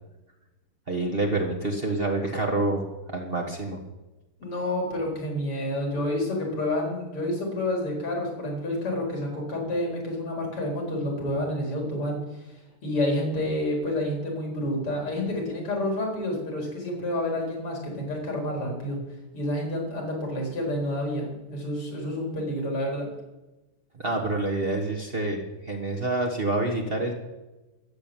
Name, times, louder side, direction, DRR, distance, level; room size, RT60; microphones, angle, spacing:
voice 1, 0.9-2.8 3.1-3.8 23.9-27.1, right 2 dB, 30° right, 1 dB, 1.5 m, -27 dB
voice 2, 4.4-12.2 12.8-19.0 19.3-23.1, left 1 dB, 85° left, 0 dB, 5.0 m, -29 dB
13.5 x 7.5 x 9.0 m, 1.1 s
omnidirectional pair, 2.4 m